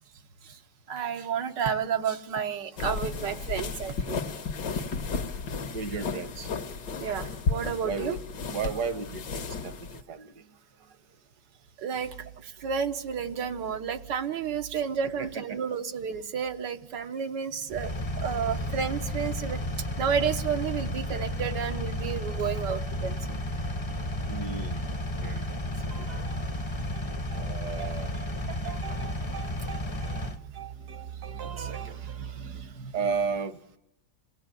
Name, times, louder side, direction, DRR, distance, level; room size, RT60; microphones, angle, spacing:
voice 1, 0.9-4.2 7.0-8.2 11.8-12.2 12.4-17.9 18.2-23.2, right 7 dB, 85° right, 6 dB, 1.8 m, -31 dB
sound 1, 2.8-10.0, left 4 dB, 80° left, 1.9 m, -33 dB
voice 2, 3.1-3.4 5.7-6.5 7.8-8.2 8.5-10.4 14.7-14.8 15.2-15.6 24.3-24.8 25.2-25.5 25.9-26.4 26.9-33.6, right 5 dB, 65° right, 11 dB, 1.6 m, -36 dB
Engine, 17.7-30.4, left 1 dB, 30° left, 0.5 m, -32 dB
27.0 x 18.0 x 9.1 m, 0.89 s
omnidirectional pair, 1.8 m